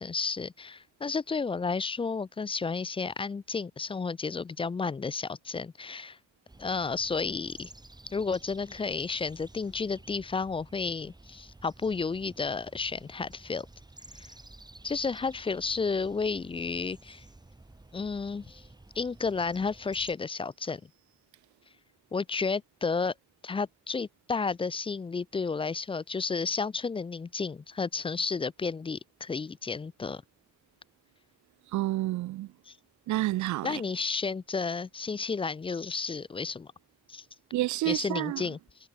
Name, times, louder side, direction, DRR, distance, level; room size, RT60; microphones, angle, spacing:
voice 1, 0.0-6.2 6.6-7.7 8.1-13.7 14.1-14.3 14.8-17.2 17.9-18.6 19.0-20.8 22.1-23.1 23.4-30.2 32.7-32.8 33.6-36.7 37.1-37.2 37.9-38.6, left 4 dB, 20° left, 0.4 m, -32 dB
sound 1, 6.5-20.1, right 2 dB, 15° right, 4.0 m, -52 dB
voice 2, 31.7-32.5 33.1-33.8 37.5-38.4, right 16 dB, 70° right, 0.6 m, -29 dB
cardioid pair, 90°, 30 cm